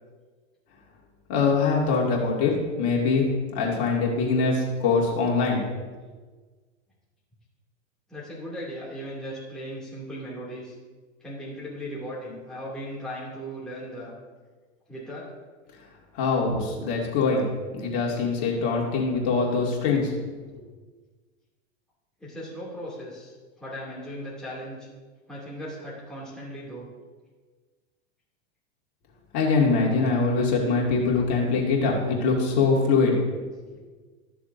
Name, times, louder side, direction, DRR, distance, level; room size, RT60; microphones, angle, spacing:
voice 1, 1.3-5.8 16.1-17.5 17.7-20.1 29.3-33.2, left 4 dB, 55° left, -2 dB, 2.6 m, -23 dB
voice 2, 8.1-10.8 11.2-14.1 14.9-15.3 22.2-24.9 25.3-26.9, equal, ahead, -7 dB, 2.7 m, -37 dB
13.0 x 6.9 x 2.7 m, 1.4 s
hypercardioid pair, 100°, 34 cm